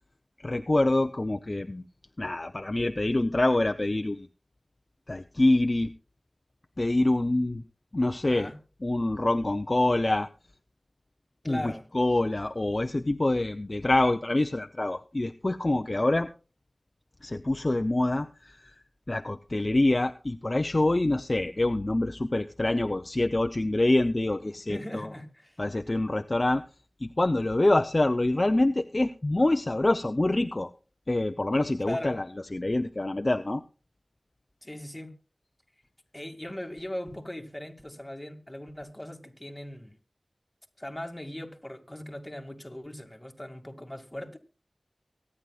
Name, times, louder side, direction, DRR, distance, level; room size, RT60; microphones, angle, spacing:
voice 1, 0.4-1.8 2.2-4.3 5.1-5.9 6.8-7.6 7.9-8.5 8.8-10.3 11.5-16.3 17.2-18.6 19.1-25.1 25.6-26.6 27.0-30.7 31.1-32.2 32.5-33.6, left 2 dB, 45° left, 0.6 m, -26 dB
voice 2, 8.3-8.6 11.4-11.9 24.7-25.6 31.8-32.3 34.6-35.2 36.1-39.9 40.8-44.4, left 1 dB, 20° left, 2.3 m, -39 dB
24.0 x 9.7 x 2.4 m
wide cardioid pair, 45°, 0 cm